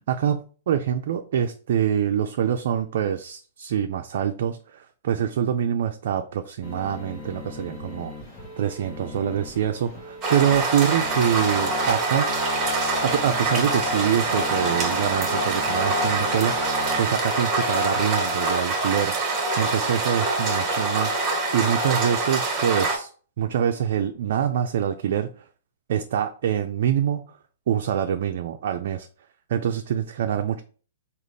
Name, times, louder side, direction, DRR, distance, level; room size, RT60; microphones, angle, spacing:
voice 1, 0.1-8.1 8.6-12.3 13.0-19.1 19.6-23.1 23.4-25.3 25.9-27.2 27.7-29.1 29.5-30.6, right 9 dB, 65° right, 6 dB, 0.3 m, -25 dB
sound 1, 6.6-17.0, left 3 dB, 35° left, 1.0 m, -39 dB
sound 2, 10.2-23.0, right 2 dB, 25° right, 1.1 m, -25 dB
3.7 x 2.3 x 3.3 m, 0.40 s
hypercardioid pair, 130°, 0 cm